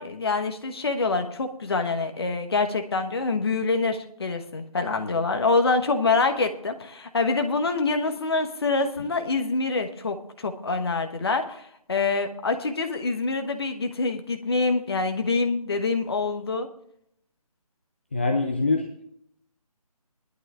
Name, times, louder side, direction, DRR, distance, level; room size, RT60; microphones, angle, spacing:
voice 1, 0.0-11.6 11.9-16.7, left 3 dB, 40° left, 6 dB, 1.2 m, -25 dB
voice 2, 18.1-19.0, left 3 dB, 20° left, 4 dB, 0.5 m, -24 dB
20.0 x 11.5 x 2.5 m, 0.70 s
figure-of-eight pair, 155°, 19 cm